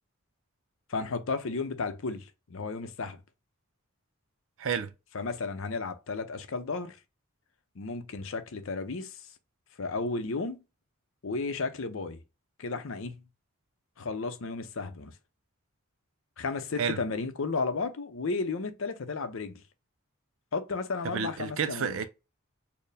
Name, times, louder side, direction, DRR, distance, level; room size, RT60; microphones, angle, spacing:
voice 1, 0.9-3.2 5.1-7.0 7.8-9.2 9.8-10.6 11.2-12.2 12.6-13.2 14.0-15.1 16.4-19.6 20.5-22.0, left 4 dB, 65° left, 0.6 m, -33 dB
voice 2, 4.6-4.9 16.8-17.0 21.0-22.1, right 6 dB, 65° right, 0.4 m, -30 dB
4.4 x 2.1 x 3.3 m
head